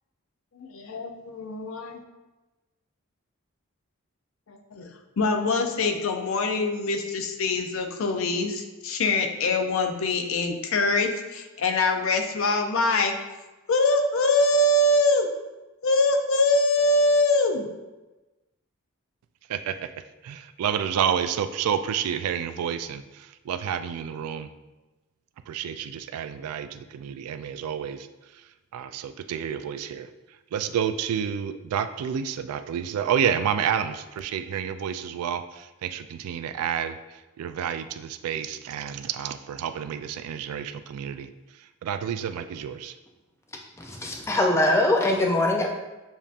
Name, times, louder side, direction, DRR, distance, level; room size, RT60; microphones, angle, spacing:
voice 1, 0.6-2.0 4.5-4.9 5.2-13.1 13.7-15.3 15.8-17.7, left 2 dB, 70° left, 5 dB, 0.5 m, -23 dB
voice 2, 20.2-24.5 25.5-28.1 28.7-30.1 30.5-37.0 37.4-41.3 41.8-42.9, right 8 dB, 90° right, 13 dB, 0.3 m, -29 dB
voice 3, 43.8-45.7, left 1 dB, 10° left, 1 dB, 0.4 m, -22 dB
7.0 x 2.7 x 2.4 m, 1.1 s
head